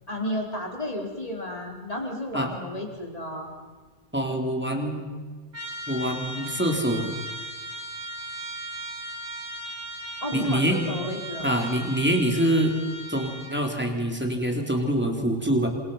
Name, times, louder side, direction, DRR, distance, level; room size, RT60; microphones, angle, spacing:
voice 1, 0.1-3.5 10.2-11.5, left 1 dB, 30° left, 1 dB, 4.8 m, -32 dB
voice 2, 4.1-5.1 5.9-7.1 10.3-10.9 11.4-12.7 13.1-15.7, right 1 dB, 10° right, 3 dB, 3.7 m, -25 dB
Trumpet, 5.5-13.6, right 1 dB, 60° right, 5.4 m, -37 dB
28.0 x 27.0 x 5.8 m, 1.4 s
omnidirectional pair, 1.2 m